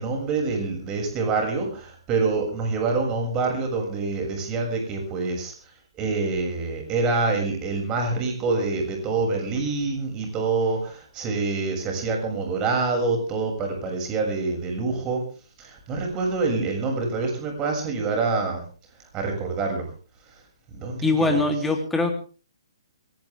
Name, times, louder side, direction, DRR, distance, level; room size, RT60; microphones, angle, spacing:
voice 1, 0.0-5.5 6.0-15.2 15.6-18.6 19.1-19.9 20.7-21.4, right 3 dB, 25° right, 2 dB, 6.9 m, -26 dB
voice 2, 21.0-22.1, left 2 dB, 5° left, 2 dB, 3.3 m, -22 dB
21.0 x 18.0 x 3.6 m, 0.38 s
hypercardioid pair, 150°, 3 cm